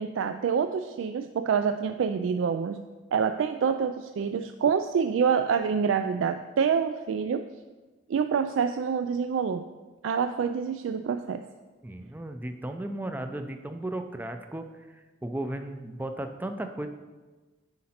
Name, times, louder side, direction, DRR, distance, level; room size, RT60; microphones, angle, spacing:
voice 1, 0.0-2.8 3.1-7.5 8.1-9.7 10.0-11.5, right 6 dB, 90° right, 9 dB, 0.3 m, -27 dB
voice 2, 11.8-16.9, right 1 dB, 10° right, 7 dB, 0.4 m, -35 dB
9.6 x 5.2 x 4.3 m, 1.3 s
head